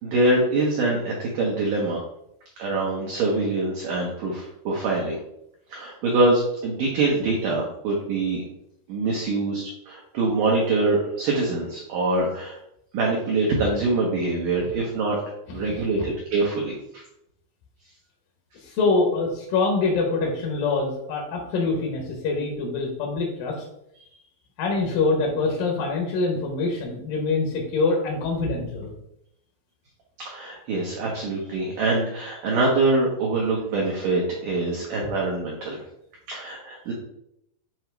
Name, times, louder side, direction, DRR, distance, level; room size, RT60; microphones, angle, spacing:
voice 1, 0.0-2.0 2.6-5.2 5.7-8.4 8.9-12.6 12.9-15.2 15.5-17.0 30.3-35.8 36.3-36.9, right 2 dB, 80° right, -3 dB, 1.9 m, -24 dB
voice 2, 15.5-16.1 18.6-23.6 24.6-28.9, left 3 dB, 75° left, 1 dB, 2.1 m, -25 dB
7.8 x 3.0 x 4.5 m, 0.79 s
omnidirectional pair, 5.2 m